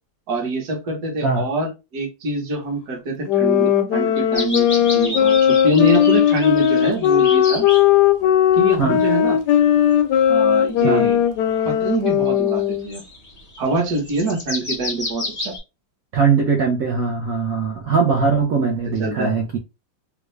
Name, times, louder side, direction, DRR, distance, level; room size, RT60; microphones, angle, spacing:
voice 1, 0.3-4.7 4.9-7.6 8.5-9.4 10.3-11.2 11.6-13.0 13.6-15.5 18.8-19.3, right 2 dB, 55° right, 1.5 m, -24 dB
sound 1, 3.3-12.9, left 10 dB, 75° left, 1.0 m, -17 dB
sound 2, 4.3-7.9 8.5-9.8 10.2-11.2 11.7-11.8 12.5-15.6, left 2 dB, 30° left, 0.7 m, -31 dB
voice 2, 16.1-19.6, right 5 dB, 75° right, 0.8 m, -20 dB
3.6 x 2.3 x 3.1 m
omnidirectional pair, 2.2 m